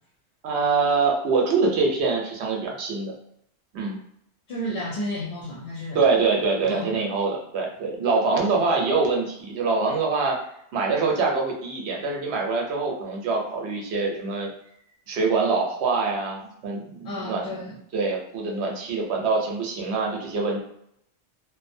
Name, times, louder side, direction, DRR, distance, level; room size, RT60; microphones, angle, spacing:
voice 1, 0.4-3.1 3.7-3.9 5.9-10.4 10.7-14.5 15.1-17.6 17.9-20.6, right 4 dB, 75° right, 0 dB, 0.9 m, -24 dB
voice 2, 4.5-6.0 6.6-6.9 17.0-17.8, equal, 60° left, -4 dB, 0.7 m, -32 dB
2.5 x 2.0 x 2.6 m, 0.75 s
omnidirectional pair, 1.1 m